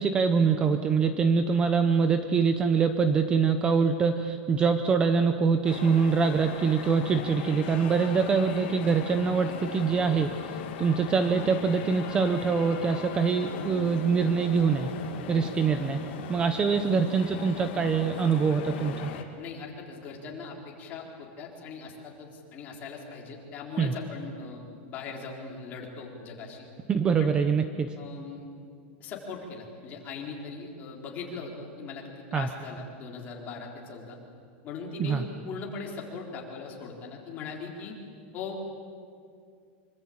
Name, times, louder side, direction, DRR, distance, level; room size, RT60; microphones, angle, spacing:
voice 1, 0.0-14.9 15.3-16.0 16.3-19.1 23.8-23.9 26.9-27.9 32.3-32.5 35.0-35.2, right 5 dB, 15° right, 8 dB, 0.7 m, -24 dB
sound 1, 5.6-19.2, left 7 dB, 55° left, 2.8 m, -38 dB
voice 2, 19.4-26.7 27.2-27.3 28.0-28.5 29.0-34.2 34.6-38.0 38.3-38.7, left 4 dB, 25° left, -1 dB, 4.1 m, -40 dB
25.5 x 24.5 x 8.8 m, 2.3 s
supercardioid pair, 180°, 7 cm